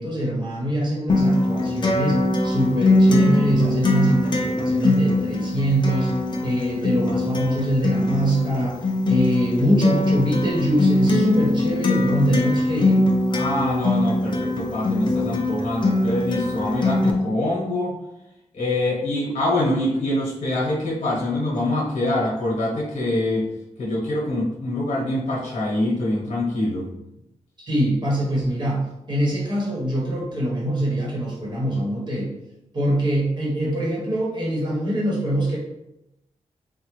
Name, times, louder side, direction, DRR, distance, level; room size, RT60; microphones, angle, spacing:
voice 1, 0.0-6.1 6.4-8.8 9.1-13.1 27.6-32.3 32.7-35.6, right 1 dB, 35° right, -4 dB, 1.0 m, -23 dB
Acoustic guitar, 1.1-17.1, left 2 dB, 40° left, 0.5 m, -22 dB
voice 2, 13.3-18.0 18.5-23.5 23.8-26.9, left 1 dB, 60° left, -6 dB, 1.0 m, -24 dB
3.5 x 2.1 x 3.1 m, 0.87 s
wide cardioid pair, 170°, 12 cm